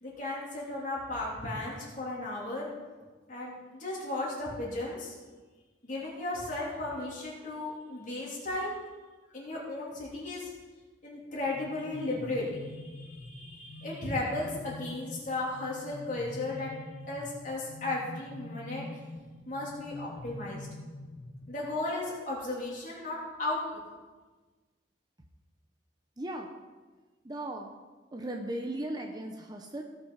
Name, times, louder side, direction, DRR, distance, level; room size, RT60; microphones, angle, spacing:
voice 1, 0.0-2.7 3.3-5.1 5.8-8.8 9.3-10.5 11.0-16.7 17.1-18.9 19.5-20.7 21.5-23.6, left 2 dB, 40° left, -5 dB, 3.5 m, -35 dB
sound 1, 11.4-21.9, left 1 dB, 10° left, 2.3 m, -45 dB
voice 2, 26.2-26.5 27.2-27.7 28.1-29.8, right 1 dB, 20° right, 3 dB, 0.7 m, -37 dB
17.5 x 6.1 x 4.9 m, 1.3 s
head